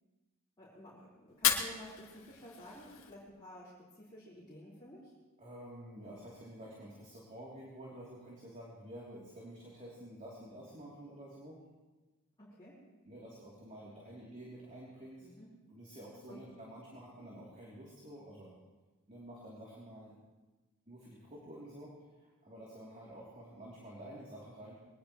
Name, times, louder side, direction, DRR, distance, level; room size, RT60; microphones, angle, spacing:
voice 1, 0.6-5.1 12.4-12.8 15.2-15.5 16.3-16.4, left 1 dB, 20° left, -10 dB, 4.7 m, -52 dB
Fire, 1.3-3.3, left 8 dB, 65° left, 1.7 m, -35 dB
voice 2, 5.4-11.6 13.0-15.3 15.7-18.5 19.1-20.2 20.9-24.7, right 1 dB, 35° right, -5 dB, 3.4 m, -50 dB
22.5 x 19.5 x 3.3 m, 1.2 s
head